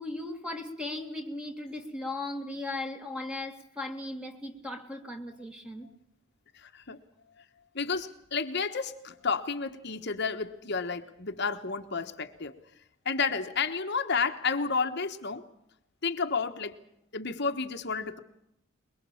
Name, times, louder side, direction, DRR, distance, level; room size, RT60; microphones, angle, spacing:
voice 1, 0.0-5.9, left 2 dB, 5° right, 2.3 m, -37 dB
voice 2, 6.5-7.0 7.7-12.6 13.0-15.4 16.0-16.8 17.1-18.2, left 5 dB, 55° left, 1.3 m, -31 dB
22.5 x 22.0 x 7.1 m
head